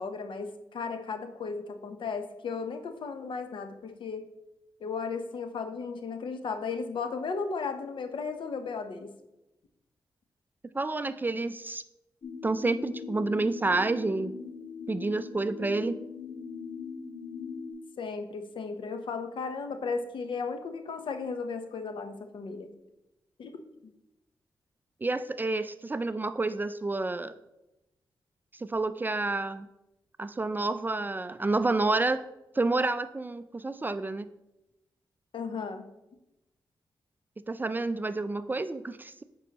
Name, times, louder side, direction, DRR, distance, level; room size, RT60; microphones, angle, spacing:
voice 1, 0.0-4.2 4.8-9.1 18.0-22.7 23.4-23.9 35.3-35.9, left 5 dB, 70° left, 7 dB, 0.7 m, -35 dB
voice 2, 10.7-11.8 12.4-14.3 14.9-16.0 25.0-27.4 28.6-29.7 30.2-32.2 32.6-34.3 37.5-39.2, right 3 dB, 20° right, 13 dB, 0.3 m, -29 dB
sound 1, 12.2-17.7, left 5 dB, 55° left, 1.6 m, -40 dB
8.1 x 5.4 x 2.9 m, 0.92 s
cardioid pair, 70°, 9 cm